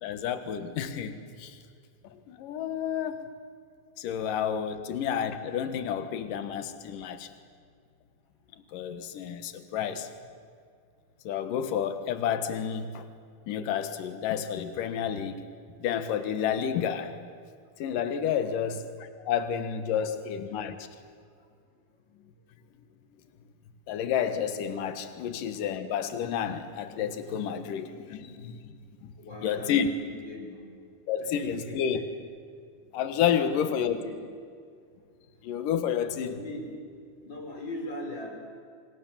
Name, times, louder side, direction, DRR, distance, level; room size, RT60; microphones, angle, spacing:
voice 1, 0.0-1.6 2.0-3.2 4.0-7.3 8.7-10.1 11.2-13.0 13.5-15.4 15.8-17.2 17.8-20.8 23.9-28.7 29.0-29.1 29.4-29.9 31.1-32.0 32.9-34.0 35.4-36.3, left 8 dB, 75° left, 9 dB, 3.0 m, -30 dB
voice 2, 8.7-9.1 15.6-15.7 19.1-19.3 21.4-21.5 28.1-28.2 29.2-30.6 31.2-32.0 33.3-34.2 35.2-35.6 36.2-36.7 37.1-38.3, left 1 dB, 30° left, 2 dB, 5.1 m, -41 dB
28.0 x 26.0 x 7.5 m, 2.2 s
omnidirectional pair, 3.9 m